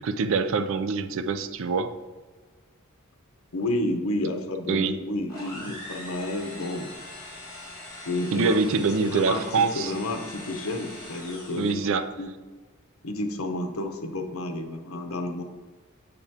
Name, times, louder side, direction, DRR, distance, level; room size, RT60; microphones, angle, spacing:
voice 1, 0.0-1.9 4.7-5.0 8.3-9.9 11.5-12.1, right 4 dB, 65° right, 11 dB, 0.4 m, -25 dB
voice 2, 3.5-6.9 8.0-8.6 9.0-9.4 9.7-12.3 13.0-15.4, left 1 dB, 75° left, 5 dB, 0.8 m, -30 dB
sound 1, 5.3-12.0, left 1 dB, 20° left, 1.8 m, -42 dB
6.8 x 6.7 x 2.8 m, 1.4 s
head